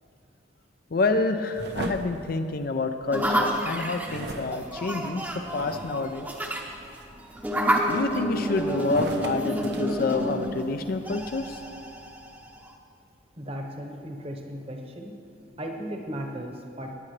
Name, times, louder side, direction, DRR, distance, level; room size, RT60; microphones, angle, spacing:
voice 1, 0.9-6.3 7.9-11.6, left 3 dB, 50° left, 8 dB, 0.5 m, -28 dB
sound 1, 1.5-3.2 4.1-6.1 6.6-7.0 7.6-8.4 8.8-10.7, right 2 dB, 55° right, 0.7 m, -38 dB
sound 2, 3.1-12.7, equal, 10° right, 0.7 m, -30 dB
voice 2, 13.4-17.0, equal, 30° right, 3 dB, 1.0 m, -36 dB
19.0 x 8.7 x 3.3 m, 2.5 s
head